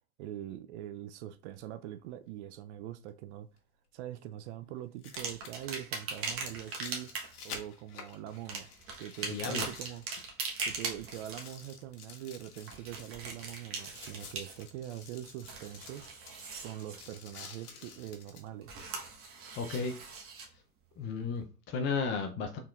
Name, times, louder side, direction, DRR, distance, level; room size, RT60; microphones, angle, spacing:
voice 1, 0.2-3.5 3.9-7.1 7.4-8.7 9.0-10.0 10.6-16.0 16.6-18.7, right 12 dB, 50° right, 0.5 m, -43 dB
sound 1, 1.5-1.6 3.6-3.7 4.8-10.5 10.8-18.5 19.1-19.2, left 5 dB, 80° left, 1.3 m, -50 dB
sound 2, 5.1-7.4 8.4-11.5 12.6-14.9 15.2-17.1 18.6-20.5 21.3-21.4, right 4 dB, 30° right, 1.1 m, -40 dB
voice 2, 9.3-9.9 19.6-19.9 21.0-22.6, left 5 dB, 25° left, 0.5 m, -34 dB
4.3 x 3.9 x 2.4 m
hypercardioid pair, 105°, 45 cm